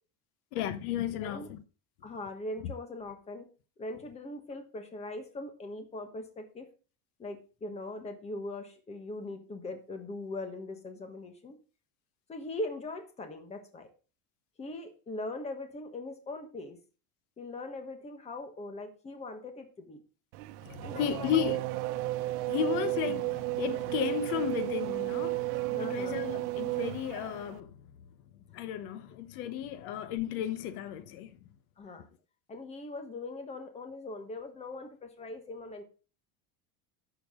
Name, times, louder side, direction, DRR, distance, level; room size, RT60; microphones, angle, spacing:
voice 1, 0.5-1.6 20.6-21.6 21.9-22.0 22.5-27.8 28.5-31.3, left 10 dB, 70° left, 1.1 m, -34 dB
voice 2, 2.0-3.5 3.8-6.7 7.2-11.6 12.3-13.9 14.6-16.8 17.4-20.0 20.8-21.4 25.7-26.2 31.8-32.1 32.5-35.8, left 2 dB, 15° left, 1.3 m, -41 dB
Race car auto racing / Accelerating revving vroom, 20.3-27.6, right 18 dB, 75° right, 1.1 m, -33 dB
11.0 x 7.1 x 3.7 m
cardioid pair, 175°, 47 cm